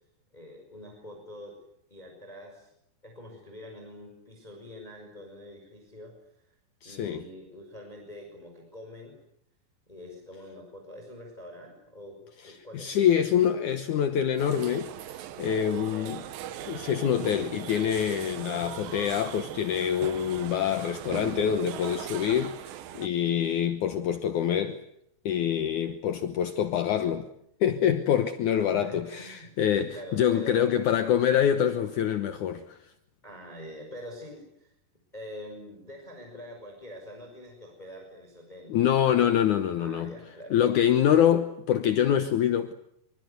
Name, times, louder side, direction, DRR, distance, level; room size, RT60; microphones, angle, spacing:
voice 1, 0.3-1.6 1.9-2.7 3.0-6.2 6.8-9.2 9.9-13.2 15.5-16.8 28.7-29.5 29.9-30.7 33.2-34.7 35.1-38.8 39.8-40.7, left 1 dB, 10° left, 5.4 m, -45 dB
voice 2, 6.8-7.2 12.4-15.1 15.4-16.2 16.7-22.6 22.9-24.8 25.3-27.3 27.6-32.8 38.7-40.1 40.5-42.7, left 9 dB, 70° left, 1.8 m, -25 dB
sound 1, 14.4-23.1, right 11 dB, 70° right, 2.5 m, -39 dB
25.0 x 25.0 x 8.1 m
omnidirectional pair, 5.1 m